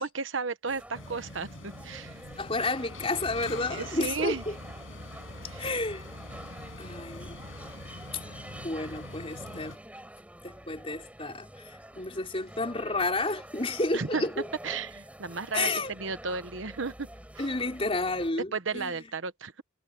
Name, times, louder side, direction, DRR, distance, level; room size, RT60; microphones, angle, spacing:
voice 1, 0.0-2.2 3.7-4.4 5.5-5.6 13.9-14.3 14.6-17.1 17.3-17.4 18.5-19.6, right 4 dB, 70° right, 1.1 m, -34 dB
sound 1, 0.7-18.3, right 1 dB, 5° right, 7.3 m, -47 dB
sound 2, 0.9-9.8, left 2 dB, 75° left, 5.7 m, -44 dB
voice 2, 2.4-4.6 5.6-6.0 6.8-7.4 8.1-8.2 8.6-9.8 10.4-14.4 15.5-16.0 17.4-18.9, left 2 dB, 30° left, 3.6 m, -31 dB
head